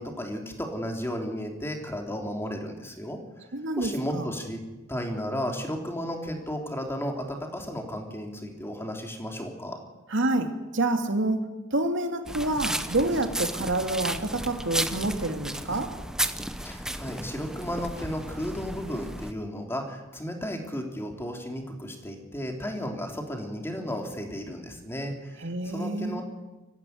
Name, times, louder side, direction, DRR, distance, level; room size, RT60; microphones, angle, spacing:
voice 1, 0.0-3.2 3.7-4.6 4.9-9.8 16.6-26.2, equal, 10° left, 2 dB, 3.3 m, -34 dB
voice 2, 3.5-4.4 10.1-15.9 25.4-26.2, right 2 dB, 65° right, 5 dB, 2.7 m, -28 dB
sound 1, 12.3-19.3, right 1 dB, 5° right, 1.0 m, -33 dB
23.5 x 15.0 x 9.4 m, 1.1 s
head